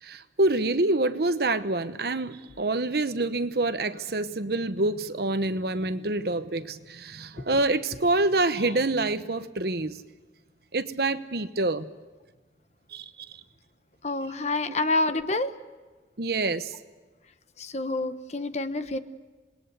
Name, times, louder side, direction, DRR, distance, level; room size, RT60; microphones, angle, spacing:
voice 1, 0.0-10.0 10.7-11.9 12.9-13.3 14.7-14.8 16.2-16.8, right 2 dB, 60° right, 11 dB, 1.0 m, -27 dB
voice 2, 14.0-15.5 17.6-19.0, left 2 dB, 40° left, 11 dB, 1.0 m, -27 dB
27.0 x 20.5 x 8.1 m, 1.3 s
head